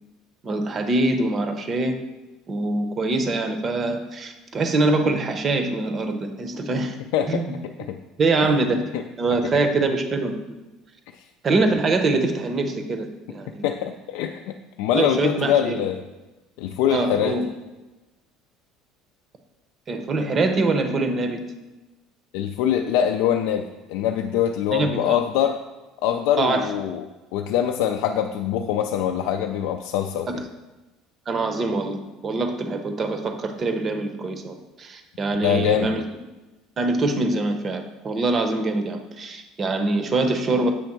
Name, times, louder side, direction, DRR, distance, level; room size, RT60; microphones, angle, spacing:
voice 1, 0.4-2.0 2.5-7.0 7.3-7.5 8.2-8.8 9.2-10.4 11.4-13.7 14.9-15.8 16.9-17.5 19.9-21.4 24.7-25.2 26.4-26.7 31.3-36.0 36.8-40.7, right 2 dB, 25° right, 7 dB, 0.7 m, -24 dB
voice 2, 7.1-7.4 7.9-8.0 8.4-8.5 8.9-9.0 11.1-11.2 13.6-16.0 16.6-17.4 22.3-25.6 26.0-27.0 27.3-30.4 35.4-35.9, left 10 dB, 80° left, 4 dB, 0.4 m, -23 dB
7.7 x 3.4 x 5.9 m, 1.1 s
cardioid pair, 150°, 0 cm